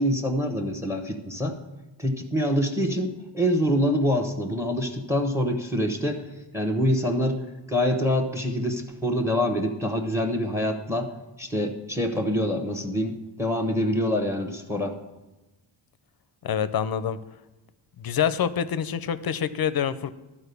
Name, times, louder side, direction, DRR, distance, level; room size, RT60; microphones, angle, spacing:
voice 1, 0.0-1.6 2.0-6.2 6.5-7.4 7.7-11.1 11.4-14.9, equal, 5° right, 5 dB, 1.1 m, -25 dB
voice 2, 16.4-17.2 18.0-20.1, left 8 dB, 50° left, 14 dB, 0.6 m, -26 dB
12.0 x 4.3 x 6.9 m, 1.0 s
cardioid pair, 95°, 48 cm